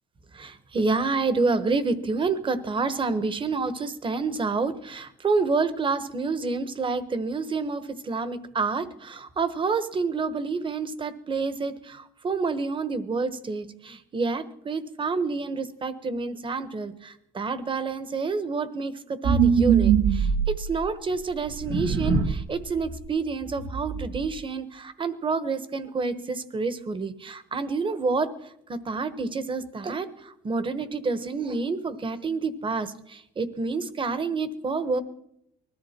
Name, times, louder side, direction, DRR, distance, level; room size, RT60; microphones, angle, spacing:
voice 1, 0.3-20.3 20.6-28.3 28.7-35.0, right 4 dB, 30° right, 13 dB, 1.2 m, -28 dB
sound 1, 19.2-20.8 21.5-22.5 22.8-23.0 23.4-24.3, right 7 dB, 85° right, 1.7 m, -22 dB
20.0 x 14.0 x 4.5 m, 0.75 s
cardioid pair, 110°, 17 cm